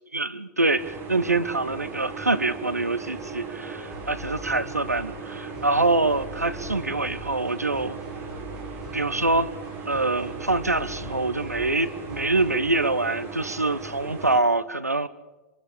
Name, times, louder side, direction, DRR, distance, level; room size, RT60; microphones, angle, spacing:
voice 1, 0.1-8.0 8.9-9.5 9.9-15.1, right 2 dB, 90° right, 14 dB, 1.2 m, -25 dB
sound 1, 0.8-14.4, right 4 dB, 25° right, 7.9 m, -38 dB
sound 2, 3.9-12.6, left 1 dB, 5° right, 6.8 m, -43 dB
26.0 x 25.0 x 5.0 m, 1.1 s
figure-of-eight pair, 100°, 8 cm